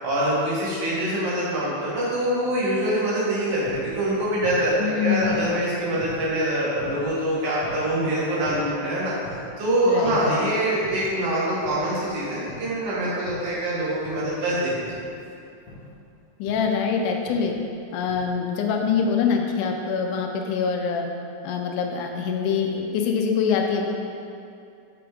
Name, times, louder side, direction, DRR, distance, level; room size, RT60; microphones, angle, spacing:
voice 1, 0.0-9.1 9.6-14.8, right 1 dB, 80° right, -8 dB, 2.9 m, -24 dB
sound 1, 3.4-7.2 7.6-9.7 10.0-10.5 10.8-13.7 14.0-14.4 14.9-16.1 16.5-16.9 17.3-17.7 18.1-18.5 18.8-18.9, left 1 dB, 65° left, 1.7 m, -43 dB
voice 2, 4.8-5.4 9.9-10.5 16.4-17.5 17.9-21.1 21.4-23.9, left 6 dB, 85° left, 3 dB, 2.1 m, -24 dB
6.1 x 5.0 x 3.5 m, 2.5 s
omnidirectional pair, 3.5 m